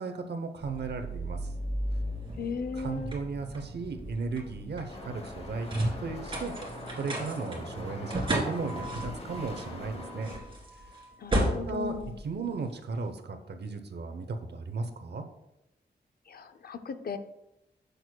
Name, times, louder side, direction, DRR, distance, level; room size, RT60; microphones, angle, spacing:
voice 1, 0.0-1.5 2.8-5.7 6.0-6.5 7.0-10.3 11.3-11.9 12.2-15.2, right 4 dB, 70° right, 7 dB, 0.8 m, -35 dB
sound 1, 0.6-13.0, right 1 dB, 30° right, 1.9 m, -35 dB
voice 2, 2.4-3.1 11.2-12.2 16.3-17.2, left 5 dB, 60° left, 11 dB, 0.5 m, -37 dB
sound 2, 4.9-10.4, left 1 dB, 35° left, 0.9 m, -42 dB
10.5 x 6.6 x 2.2 m, 0.89 s
wide cardioid pair, 180°, 18 cm